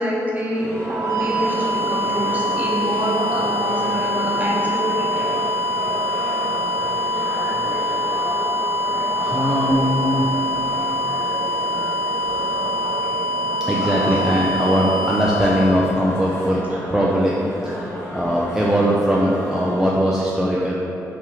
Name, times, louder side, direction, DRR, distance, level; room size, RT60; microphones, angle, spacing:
voice 1, 0.0-5.4 6.6-8.2 8.8-9.5 12.4-12.7 13.8-14.2 16.7-16.8 17.7-17.8, equal, 25° right, -5 dB, 0.9 m, -27 dB
sound 1, 0.5-19.9, equal, 30° left, 0.9 m, -31 dB
sound 2, 0.7-16.5, equal, 90° right, 0.7 m, -24 dB
voice 2, 5.7-6.3 7.2-7.6 8.9-10.4 11.0-11.7 12.2-16.6 16.9-17.4 17.7-20.7, equal, 5° right, -5 dB, 0.4 m, -22 dB
3.7 x 2.9 x 2.9 m, 2.9 s
cardioid pair, 70°, 7 cm